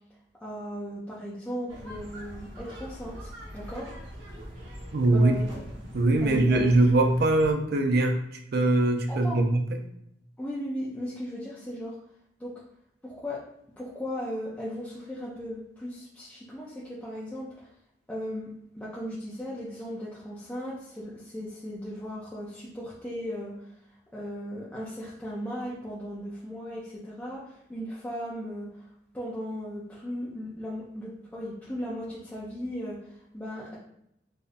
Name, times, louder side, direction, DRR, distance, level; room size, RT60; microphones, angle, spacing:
voice 1, 0.4-3.9 5.1-5.5 6.2-6.8 9.1-9.4 10.4-12.0 12.4-12.5 13.0-13.4 13.8-17.7 18.1-23.8 24.1-28.8 29.1-33.8, equal, 10° left, -7 dB, 0.5 m, -37 dB
sound 1, 1.7-7.5, equal, 85° right, 0.8 m, -42 dB
voice 2, 4.9-5.4 5.9-8.2 8.5-9.8, right 2 dB, 60° right, 5 dB, 0.5 m, -22 dB
4.0 x 2.6 x 2.5 m, 0.78 s
head